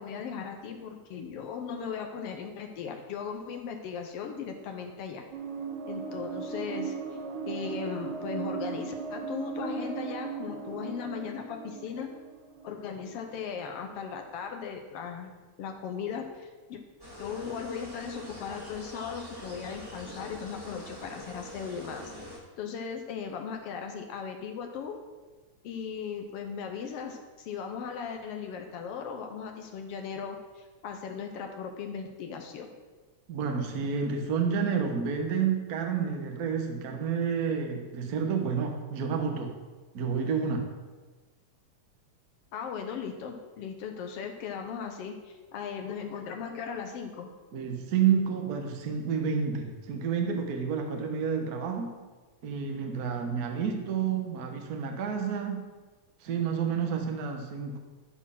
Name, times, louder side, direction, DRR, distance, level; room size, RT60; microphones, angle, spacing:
voice 1, 0.0-5.2 5.9-6.9 7.5-12.1 12.6-15.3 15.6-16.8 17.2-22.1 22.6-25.0 25.6-32.7 42.5-47.3, left 6 dB, 70° left, 4 dB, 1.6 m, -37 dB
sound 1, 5.3-13.4, right 6 dB, 90° right, 2.3 m, -37 dB
sound 2, 17.0-22.4, equal, 10° right, 1.8 m, -45 dB
voice 2, 33.3-39.6 39.9-40.7 47.5-51.9 52.4-55.6 56.2-57.8, right 6 dB, 70° right, 4 dB, 0.8 m, -29 dB
12.5 x 4.3 x 5.7 m, 1.3 s
omnidirectional pair, 3.3 m